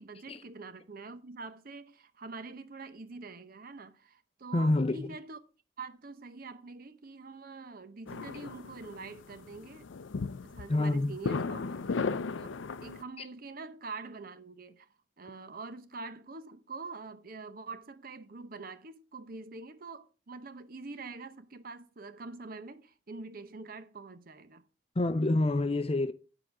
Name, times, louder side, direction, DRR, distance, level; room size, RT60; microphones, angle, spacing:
voice 1, 0.0-5.4 5.8-9.9 10.4-12.0 12.4-14.9 15.2-24.6, right 3 dB, 50° right, 0.8 m, -45 dB
voice 2, 4.5-5.1 10.7-11.1 25.0-26.1, left 2 dB, 30° left, 0.5 m, -27 dB
sound 1, 8.1-13.0, left 4 dB, 80° left, 0.5 m, -36 dB
10.0 x 4.9 x 6.1 m
head